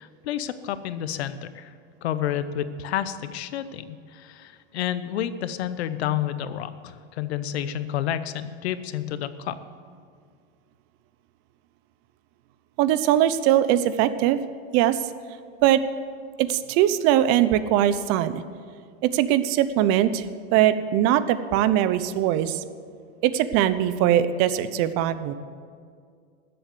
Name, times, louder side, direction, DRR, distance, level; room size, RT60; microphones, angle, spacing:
voice 1, 0.0-1.7 2.0-9.5, left 10 dB, 85° left, 13 dB, 0.9 m, -30 dB
voice 2, 12.8-14.4 14.7-15.0 15.6-15.8 16.4-18.4 19.0-20.2 20.5-22.6 23.2-25.3, right 11 dB, 50° right, 13 dB, 0.7 m, -21 dB
13.5 x 7.9 x 7.7 m, 2.2 s
supercardioid pair, 125°, 32 cm